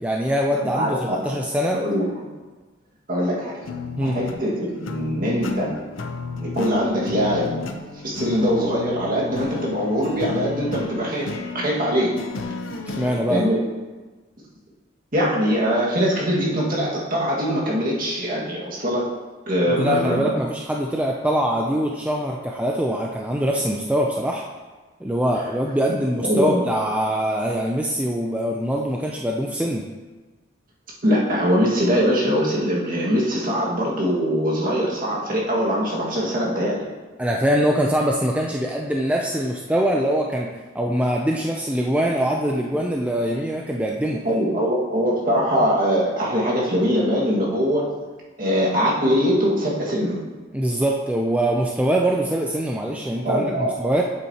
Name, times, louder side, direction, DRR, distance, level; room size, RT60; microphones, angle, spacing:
voice 1, 0.0-1.8 4.0-4.2 13.0-13.4 19.8-24.4 25.0-29.8 37.2-44.3 50.5-54.0, equal, 5° right, 0 dB, 0.4 m, -23 dB
voice 2, 1.7-2.1 3.1-3.7 4.0-5.8 6.4-7.5 8.0-12.1 13.3-13.6 15.1-19.1 19.5-20.5 25.9-26.7 31.0-36.8 44.2-47.9 48.4-50.2 53.2-53.8, equal, 45° right, -4 dB, 1.8 m, -22 dB
sound 1, 3.6-13.2, left 3 dB, 80° left, 0.6 m, -33 dB
8.2 x 7.7 x 2.9 m, 1.3 s
head